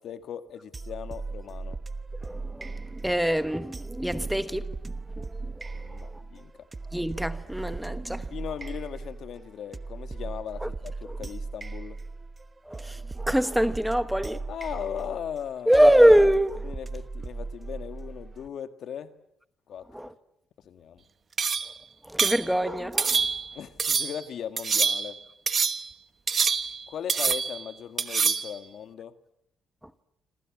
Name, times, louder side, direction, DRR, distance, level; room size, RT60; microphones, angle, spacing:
voice 1, 0.0-1.8 5.7-6.7 8.3-12.0 14.5-15.8 16.6-19.1 19.7-19.9 20.6-21.0 23.5-25.2 26.9-29.1, left 8 dB, 70° left, 1.6 m, -38 dB
sound 1, 0.7-18.5, right 3 dB, 25° right, 1.1 m, -38 dB
voice 2, 2.2-2.7 3.0-4.7 6.9-8.3 11.1-11.2 12.7-14.4 15.7-16.7 19.9-20.1 22.1-23.2, equal, 5° right, 1.2 m, -23 dB
Sliding Metal Rob Against Copper Pipe (Sounds like Sword), 21.4-21.8 22.2-22.5 23.0-23.5 23.8-24.2 24.6-25.2 25.5-25.9 26.3-26.8 27.1-27.6 28.0-28.5, right 5 dB, 40° right, 1.3 m, -26 dB
27.5 x 26.5 x 7.3 m
cardioid pair, 90°, 0 cm